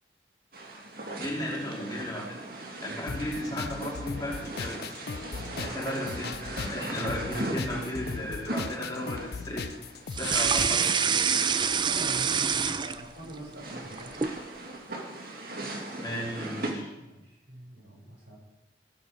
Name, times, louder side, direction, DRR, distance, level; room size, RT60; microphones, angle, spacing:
sound 1, 0.5-16.7, right 1 dB, 55° right, 2.0 m, -40 dB
voice 1, 1.1-2.4 2.8-4.9 5.6-9.6 10.1-10.9 16.0-16.9, left 1 dB, 20° left, -3 dB, 2.8 m, -34 dB
sound 2, 3.1-11.1, left 5 dB, 60° left, 0.4 m, -38 dB
voice 2, 5.5-5.9 11.8-14.3 17.0-18.4, right 1 dB, 90° right, -2 dB, 5.8 m, -45 dB
sound 3, 10.1-13.3 13.7-14.4, right 6 dB, 25° right, 0.5 m, -26 dB
15.5 x 8.5 x 6.4 m, 0.96 s
head